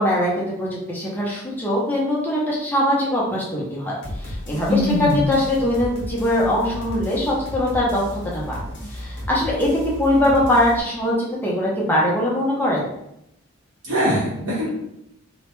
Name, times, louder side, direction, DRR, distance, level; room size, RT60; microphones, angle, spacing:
voice 1, 0.0-8.6 8.9-9.7 10.0-11.1 11.4-12.9, left 1 dB, 10° left, -5 dB, 0.4 m, -22 dB
sound 1, 4.0-10.8, left 1 dB, 50° left, 0.7 m, -33 dB
voice 2, 4.7-5.3 13.8-14.7, equal, 55° right, -10 dB, 0.7 m, -21 dB
2.1 x 2.0 x 2.9 m, 0.81 s
head